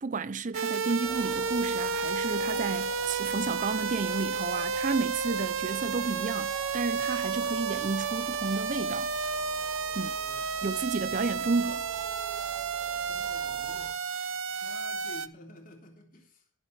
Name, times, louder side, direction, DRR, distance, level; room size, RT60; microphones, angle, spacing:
voice 1, 0.0-9.1 9.9-10.2 10.6-11.9, right 3 dB, 40° right, 0.5 m, -32 dB
sound 1, 0.5-15.3, right 5 dB, 80° right, 0.8 m, -32 dB
sound 2, 1.0-13.9, left 2 dB, 15° left, 0.7 m, -48 dB
voice 2, 10.2-10.5 13.1-14.0 14.5-16.7, left 1 dB, 40° left, 3.6 m, -51 dB
20.0 x 8.3 x 3.4 m
head